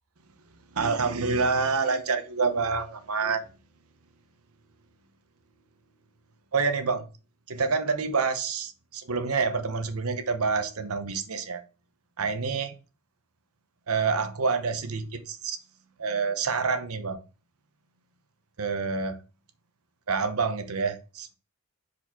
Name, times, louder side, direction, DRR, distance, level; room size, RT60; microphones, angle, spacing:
voice 1, 0.7-3.4 6.5-7.1 7.5-11.6 12.2-12.7 13.9-15.6 16.0-17.2 18.6-19.2 20.1-21.4, right 4 dB, 85° right, 9 dB, 0.9 m, -27 dB
4.9 x 4.4 x 4.4 m, 0.33 s
head